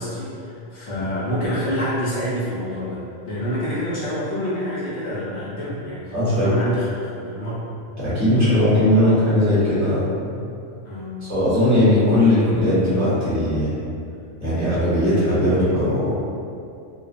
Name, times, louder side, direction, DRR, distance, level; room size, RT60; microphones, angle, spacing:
voice 1, 0.0-7.7 10.8-11.2, equal, 80° left, -9 dB, 0.9 m, -27 dB
voice 2, 6.1-6.5 8.0-10.0 11.2-13.8 14.4-16.1, left 1 dB, 15° right, -12 dB, 0.7 m, -18 dB
2.3 x 2.2 x 2.4 m, 2.5 s
omnidirectional pair, 1.3 m